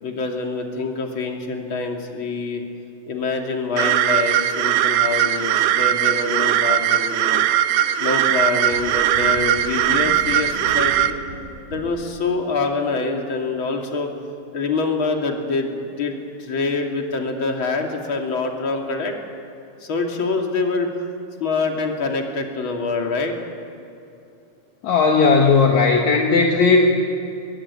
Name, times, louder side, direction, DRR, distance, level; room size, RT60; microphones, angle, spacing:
voice 1, 0.0-2.6 3.1-7.5 8.0-11.1 11.7-14.1 14.5-19.1 19.9-20.9 21.4-23.3, left 4 dB, 40° left, 2 dB, 3.2 m, -25 dB
sound 1, 3.8-11.1, right 12 dB, 85° right, 2.6 m, -19 dB
sound 2, 8.7-12.2, right 1 dB, 65° right, 7.4 m, -37 dB
voice 2, 24.8-26.9, left 4 dB, 65° left, 1 dB, 2.7 m, -16 dB
23.5 x 21.0 x 9.8 m, 2.8 s
omnidirectional pair, 3.8 m